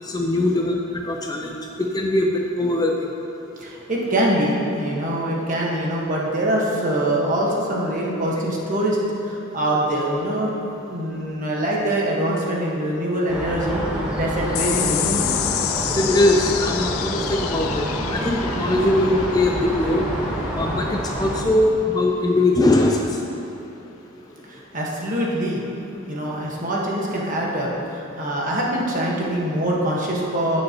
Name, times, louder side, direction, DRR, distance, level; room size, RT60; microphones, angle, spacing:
voice 1, 0.0-3.1 15.9-20.1 20.6-23.2, left 1 dB, 20° left, 1 dB, 0.4 m, -21 dB
voice 2, 3.6-9.0 9.2-10.5 10.9-15.3 24.4-25.6 26.1-30.6, right 1 dB, 40° right, -4 dB, 1.3 m, -24 dB
sound 1, 13.3-21.4, equal, 5° right, 1.1 m, -27 dB
sound 2, 14.5-21.3, left 13 dB, 80° left, 0.4 m, -29 dB
15.5 x 6.4 x 2.9 m, 2.9 s
head